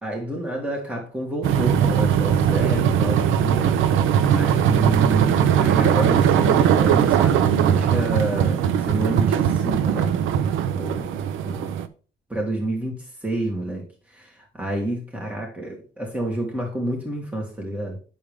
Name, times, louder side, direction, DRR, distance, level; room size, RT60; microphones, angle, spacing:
voice 1, 0.0-3.8 4.3-10.1 10.7-11.7 12.3-18.0, right 1 dB, 5° right, 2.9 m, -29 dB
sound 1, 1.4-11.9, right 8 dB, 90° right, 0.8 m, -20 dB
8.5 x 7.2 x 3.6 m
cardioid pair, 90°, 20 cm